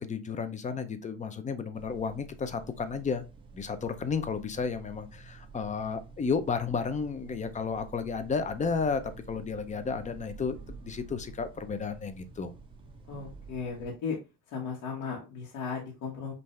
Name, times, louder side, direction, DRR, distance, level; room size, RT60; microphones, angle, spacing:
voice 1, 0.0-3.2 3.5-12.5, left 5 dB, 20° left, 10 dB, 0.6 m, -32 dB
sound 1, 1.7-13.9, right 4 dB, 15° right, 0.9 m, -49 dB
voice 2, 13.1-14.2 14.5-16.3, left 5 dB, 65° left, -3 dB, 1.4 m, -36 dB
5.5 x 2.6 x 3.2 m, 0.29 s
cardioid pair, 120°, 33 cm